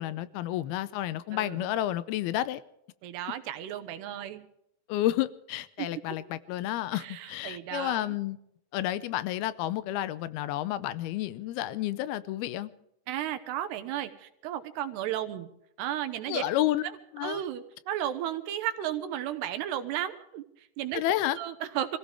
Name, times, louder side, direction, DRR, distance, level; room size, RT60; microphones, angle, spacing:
voice 1, 0.0-2.6 4.9-8.4 8.7-12.7 16.3-16.8 17.1-17.4 20.9-21.4, left 13 dB, 80° left, 15 dB, 2.4 m, -30 dB
voice 2, 1.3-1.7 3.0-4.5 5.8-5.9 6.9-8.1 13.1-15.5 15.8-16.4 17.2-21.0 21.3-22.0, right 11 dB, 80° right, 10 dB, 3.0 m, -34 dB
26.0 x 16.0 x 3.5 m, 0.78 s
omnidirectional pair, 4.8 m